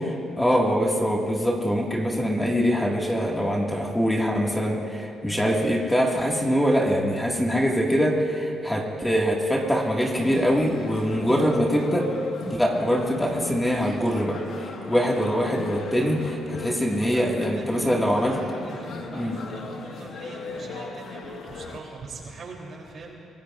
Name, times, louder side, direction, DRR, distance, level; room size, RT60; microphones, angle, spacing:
voice 1, 0.4-12.1 12.5-18.4 19.1-19.4, equal, 10° left, -2 dB, 2.0 m, -23 dB
sound 1, 10.2-21.8, left 3 dB, 75° left, 1.6 m, -37 dB
voice 2, 17.0-17.8 18.5-23.1, right 3 dB, 55° right, -1 dB, 3.4 m, -43 dB
25.0 x 19.0 x 2.6 m, 2.8 s
cardioid pair, 90°, 0 cm